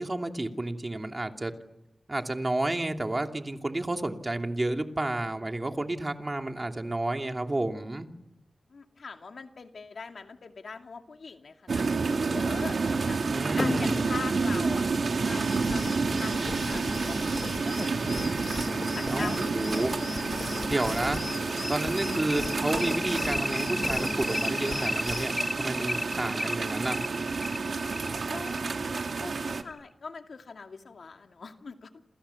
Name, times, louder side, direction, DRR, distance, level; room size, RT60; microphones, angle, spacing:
voice 1, 0.0-1.5 2.1-8.1 13.3-14.1 19.1-19.9 20.7-21.2 21.7-27.0, right 2 dB, 30° right, 4 dB, 2.8 m, -31 dB
voice 2, 8.7-13.2 13.6-14.9 15.2-15.8 16.2-18.4 18.9-19.4 19.7-20.0 28.3-31.9, left 4 dB, 80° left, 5 dB, 2.4 m, -42 dB
sound 1, 11.7-29.6, right 4 dB, 80° right, 2.1 m, -30 dB
sound 2, 13.6-16.7 18.2-18.3 18.7-18.8 19.2-19.3 19.7-29.8, left 2 dB, 25° left, 1.0 m, -35 dB
sound 3, 15.4-25.4, left 3 dB, 55° left, 1.2 m, -38 dB
29.0 x 28.0 x 7.2 m, 0.84 s
wide cardioid pair, 75°, 0 cm